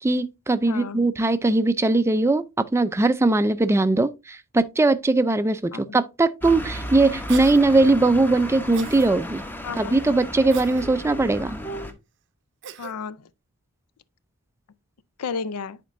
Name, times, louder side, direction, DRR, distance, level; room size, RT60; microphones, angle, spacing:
voice 1, 0.0-2.4 2.7-9.4 9.8-11.6, right 2 dB, 10° right, 0.3 m, -20 dB
voice 2, 0.7-1.0 5.7-6.0 9.6-10.1 12.8-13.3 15.2-15.8, left 5 dB, 90° left, 0.5 m, -32 dB
sound 1, 6.4-11.9, equal, 10° left, 0.7 m, -34 dB
Cough, 7.3-7.6 8.7-9.1 10.5-10.9 12.6-12.9, right 9 dB, 55° right, 0.6 m, -38 dB
10.0 x 4.4 x 2.5 m
head